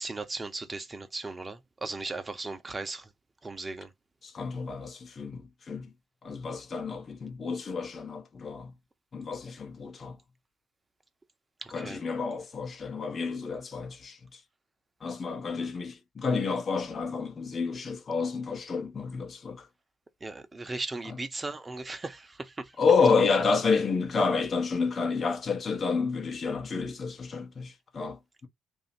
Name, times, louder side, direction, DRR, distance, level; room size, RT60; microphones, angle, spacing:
voice 1, 0.0-3.0 3.4-3.9 11.8-12.0 20.2-22.2, right 3 dB, 30° right, 1.0 m, -37 dB
voice 2, 4.2-5.9 6.2-8.7 9.1-10.2 11.7-14.4 15.0-19.7 21.0-21.2 22.8-28.5, left 5 dB, 50° left, 1.0 m, -29 dB
2.8 x 2.8 x 4.3 m
hypercardioid pair, 45°, 0 cm